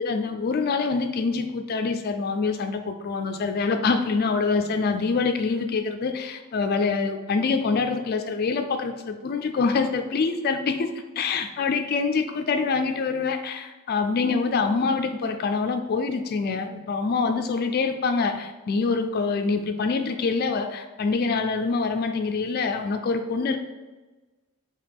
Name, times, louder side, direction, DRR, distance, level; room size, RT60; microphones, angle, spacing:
voice 1, 0.0-10.9 11.2-23.6, left 4 dB, 45° left, 7 dB, 0.3 m, -25 dB
4.8 x 2.9 x 3.5 m, 1.2 s
head